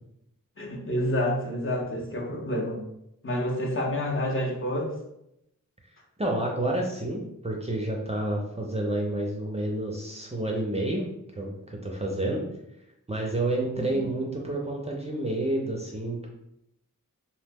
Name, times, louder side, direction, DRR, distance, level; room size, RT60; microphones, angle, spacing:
voice 1, 0.6-2.8 3.2-4.9 13.8-14.0, left 1 dB, 40° left, -1 dB, 0.6 m, -28 dB
voice 2, 6.2-11.1 11.4-12.4 13.1-16.3, right 1 dB, 20° right, -1 dB, 0.4 m, -29 dB
2.7 x 2.0 x 3.4 m, 0.81 s
wide cardioid pair, 80°, 34 cm